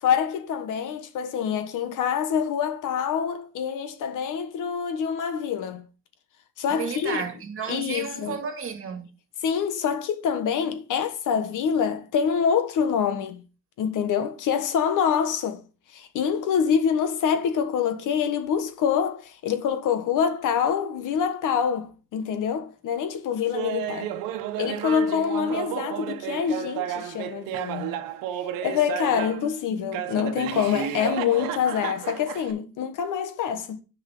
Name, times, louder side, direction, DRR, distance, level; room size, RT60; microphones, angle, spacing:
voice 1, 0.0-5.9 6.6-7.2 7.7-8.3 9.4-13.4 13.8-15.6 15.9-24.1 24.6-28.0 28.6-33.8, left 7 dB, 65° left, 1.3 m, -26 dB
voice 2, 6.7-9.1, right 6 dB, 40° right, 2.2 m, -32 dB
Laughter, 23.5-29.5 29.9-32.5, right 11 dB, 90° right, 1.1 m, -32 dB
10.5 x 5.5 x 3.8 m
cardioid pair, 130°, 33 cm